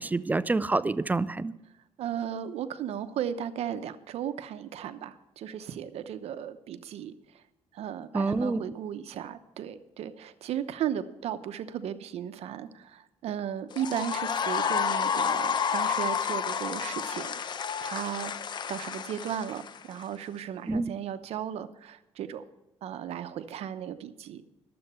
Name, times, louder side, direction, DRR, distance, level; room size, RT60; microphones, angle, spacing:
voice 1, 0.0-1.5 8.1-8.6 20.7-20.9, right 3 dB, 15° right, 15 dB, 0.4 m, -27 dB
voice 2, 2.0-7.1 7.7-17.4 17.8-22.4 22.8-24.4, right 9 dB, 70° right, 11 dB, 0.8 m, -35 dB
sound 1, 13.7-20.0, left 7 dB, 45° left, 0.6 m, -30 dB
12.0 x 7.7 x 6.8 m, 0.95 s
cardioid pair, 110°, 11 cm